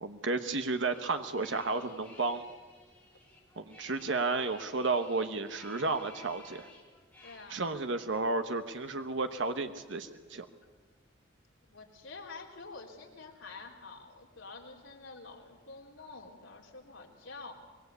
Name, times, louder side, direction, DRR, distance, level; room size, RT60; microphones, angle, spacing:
voice 1, 0.0-2.5 3.6-6.7 7.5-10.4, right 3 dB, 70° right, 8 dB, 1.2 m, -32 dB
sound 1, 0.9-7.4, left 2 dB, 5° left, 4.4 m, -55 dB
voice 2, 7.2-7.6 11.7-17.5, left 3 dB, 90° left, 0 dB, 3.8 m, -48 dB
25.0 x 21.0 x 8.4 m, 1.4 s
head